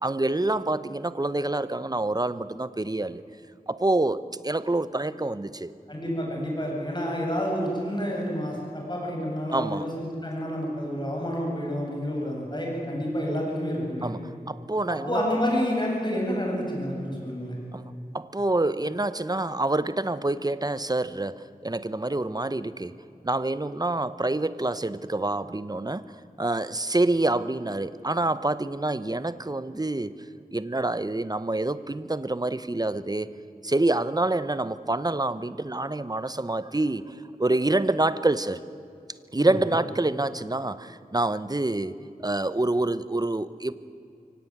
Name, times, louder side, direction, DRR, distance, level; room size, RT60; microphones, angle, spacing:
voice 1, 0.0-3.2 3.7-5.7 9.5-9.9 14.0-15.2 17.7-22.9 23.2-30.1 30.5-33.3 33.6-38.6 39.3-41.9 42.2-43.7, right 2 dB, 25° right, 14 dB, 0.9 m, -27 dB
voice 2, 5.9-14.1 14.9-17.6 39.4-39.5, equal, 30° left, -2 dB, 8.0 m, -29 dB
24.0 x 17.5 x 9.4 m, 2.5 s
wide cardioid pair, 60°, 15 cm